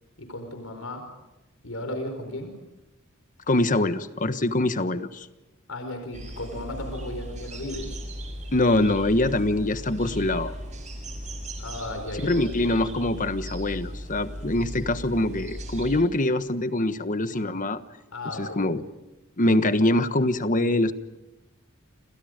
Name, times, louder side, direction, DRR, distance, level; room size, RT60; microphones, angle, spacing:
voice 1, 0.2-1.1 1.6-2.6 5.7-8.0 11.6-12.4 18.1-18.7, left 1 dB, 80° left, 5 dB, 4.8 m, -35 dB
voice 2, 3.5-5.3 8.5-10.5 12.2-17.8 18.4-18.8 19.4-20.9, left 1 dB, 40° left, 11 dB, 1.3 m, -24 dB
sound 1, 6.1-16.0, equal, 35° right, 6.6 m, -37 dB
30.0 x 27.5 x 5.2 m, 1.1 s
head